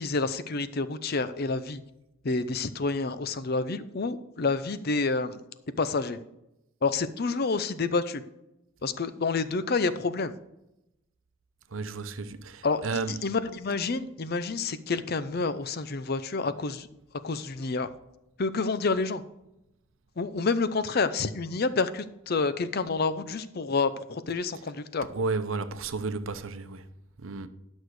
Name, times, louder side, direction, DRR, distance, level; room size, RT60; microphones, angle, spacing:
voice 1, 0.0-1.8 2.2-5.4 5.8-6.2 6.8-8.2 8.8-10.3 12.6-16.9 17.2-17.9 18.4-19.2 20.2-25.1, left 4 dB, 50° left, 0.6 m, -28 dB
voice 2, 11.7-13.2 25.1-26.9 27.2-27.5, right 4 dB, 80° right, 0.8 m, -32 dB
11.5 x 6.3 x 4.8 m
head